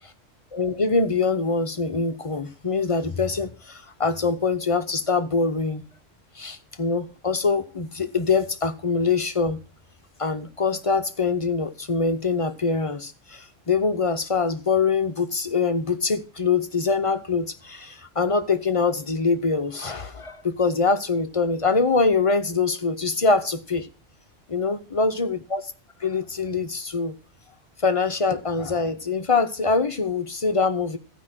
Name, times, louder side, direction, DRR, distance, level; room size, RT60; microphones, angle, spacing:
voice 1, 0.5-5.8 6.3-9.6 10.2-23.9 24.5-25.6 26.0-27.2 27.8-31.0, left 4 dB, 30° left, 0.7 m, -24 dB
14.5 x 5.1 x 6.1 m
omnidirectional pair, 1.3 m